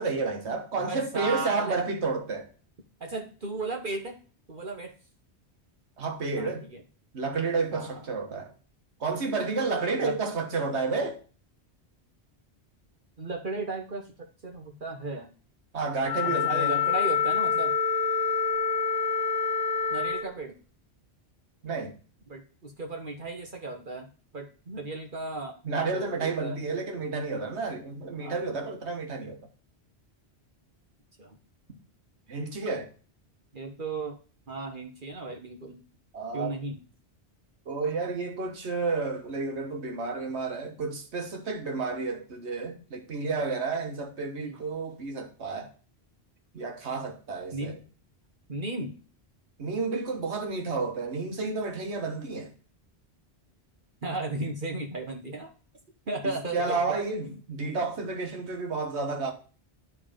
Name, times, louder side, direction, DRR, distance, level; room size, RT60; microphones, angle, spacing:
voice 1, 0.0-2.5 6.0-6.7 7.1-8.5 9.0-11.2 15.7-16.8 21.6-21.9 25.6-29.4 32.3-32.9 36.1-36.6 37.7-45.7 46.5-47.8 49.6-52.5 56.5-59.3, right 4 dB, 80° right, 1.5 m, -31 dB
voice 2, 0.7-1.8 3.0-4.2 4.5-4.9 6.4-6.8 7.7-8.0 10.0-10.2 13.2-14.1 14.4-15.3 16.2-17.7 19.9-20.5 22.3-24.1 24.3-25.5 25.9-26.6 28.2-28.5 31.2-31.4 33.5-34.2 34.5-35.8 36.3-36.8 44.4-44.6 47.5-47.8 48.5-48.9 54.0-55.5 56.1-56.8 57.2-57.4, right 2 dB, 50° right, 1.2 m, -35 dB
Wind instrument woodwind instrument, 16.0-20.3, left 6 dB, 35° left, 1.3 m, -26 dB
10.5 x 3.7 x 5.0 m
omnidirectional pair, 1.1 m